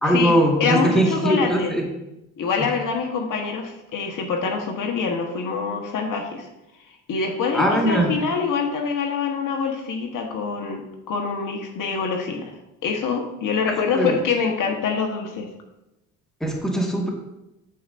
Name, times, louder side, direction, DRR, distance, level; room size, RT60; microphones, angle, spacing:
voice 1, 0.0-1.9 7.5-8.1 13.7-14.1 16.4-17.1, right 1 dB, ahead, -1 dB, 1.7 m, -21 dB
voice 2, 0.6-1.7 2.4-6.5 7.1-10.8 11.1-12.5 12.8-15.5, left 5 dB, 60° left, 2 dB, 1.3 m, -25 dB
13.0 x 4.7 x 2.6 m, 0.93 s
supercardioid pair, 80°, 37 cm